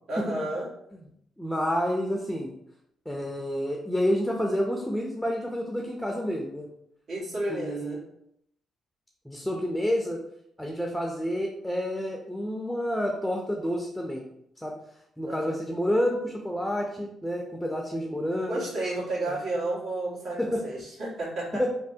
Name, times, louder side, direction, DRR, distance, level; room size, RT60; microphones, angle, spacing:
voice 1, 0.1-0.7 7.1-8.0 15.2-15.5 18.5-21.6, right 2 dB, 65° right, -6 dB, 1.5 m, -32 dB
voice 2, 1.4-2.5 3.1-6.7 7.5-8.0 9.2-10.2 10.6-14.2 14.6-14.7 15.2-18.7 19.3-19.4 20.4-20.6 21.5-21.7, equal, 5° left, 1 dB, 0.5 m, -29 dB
3.1 x 2.2 x 2.7 m, 0.74 s
supercardioid pair, 60°, 0 cm